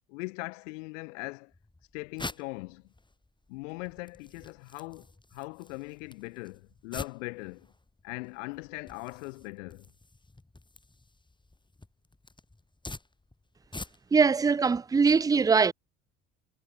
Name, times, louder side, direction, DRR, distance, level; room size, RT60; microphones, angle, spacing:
voice 1, 0.1-1.5 1.9-2.9 3.5-7.7 8.0-9.9, left 26 dB, 70° left, 1.2 m, -40 dB
sound 1, 1.5-14.3, left 2 dB, 10° left, 3.2 m, -47 dB
voice 2, 14.1-15.7, right 5 dB, 10° right, 0.4 m, -22 dB
figure-of-eight pair, 55°, 39 cm